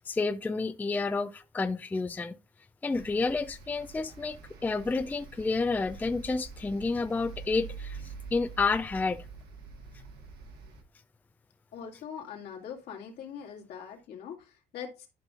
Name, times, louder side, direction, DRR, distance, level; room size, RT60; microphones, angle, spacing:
voice 1, 0.1-2.3 2.8-9.3, left 3 dB, 10° left, 0.3 m, -30 dB
sound 1, 2.9-10.8, right 5 dB, 70° right, 1.6 m, -46 dB
voice 2, 11.7-15.1, left 7 dB, 70° left, 2.3 m, -42 dB
11.0 x 5.4 x 2.5 m
cardioid pair, 110°, 17 cm